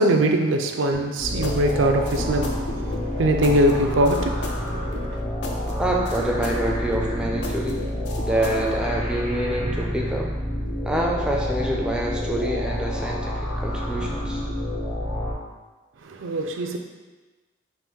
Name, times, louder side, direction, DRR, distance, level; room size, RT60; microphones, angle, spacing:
voice 1, 0.0-2.5 3.2-5.2 16.1-16.8, right 1 dB, 85° right, 4 dB, 0.4 m, -22 dB
sound 1, 0.9-8.8, left 2 dB, 60° left, 0.5 m, -35 dB
sound 2, 1.2-15.3, equal, 45° left, 1.3 m, -28 dB
voice 2, 5.8-7.8 8.3-10.3 10.8-14.4, right 1 dB, 5° right, -1 dB, 0.4 m, -26 dB
4.2 x 2.5 x 3.7 m, 1.2 s
head